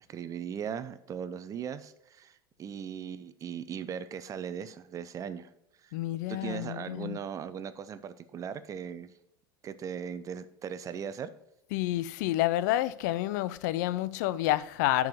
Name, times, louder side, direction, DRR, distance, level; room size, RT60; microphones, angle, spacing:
voice 1, 0.1-5.5 5.8-5.9 6.3-9.1 9.6-11.3, right 8 dB, 30° right, 0.7 m, -38 dB
voice 2, 5.9-7.2 11.7-15.1, left 15 dB, 55° left, 0.4 m, -29 dB
10.5 x 4.7 x 5.1 m
figure-of-eight pair, 80°, 11 cm